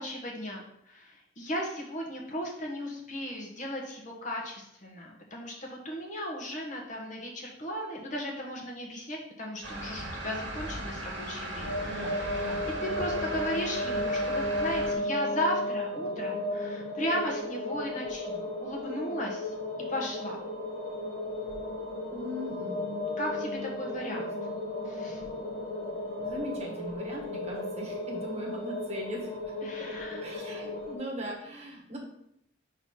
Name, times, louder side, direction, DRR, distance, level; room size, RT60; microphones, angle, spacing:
voice 1, 0.0-19.5 19.9-20.4 23.2-24.4 24.8-25.2 29.6-30.2, equal, 40° left, -1 dB, 1.4 m, -36 dB
sound 1, 9.6-14.9, right 1 dB, 70° right, 1.9 m, -38 dB
sound 2, 11.6-31.0, left 1 dB, 85° left, 1.9 m, -34 dB
voice 2, 11.9-12.6 22.1-22.8 24.0-24.3 26.2-29.4 29.7-29.8 30.2-32.0, equal, 35° right, -2 dB, 1.6 m, -39 dB
6.0 x 4.0 x 5.5 m, 0.77 s
head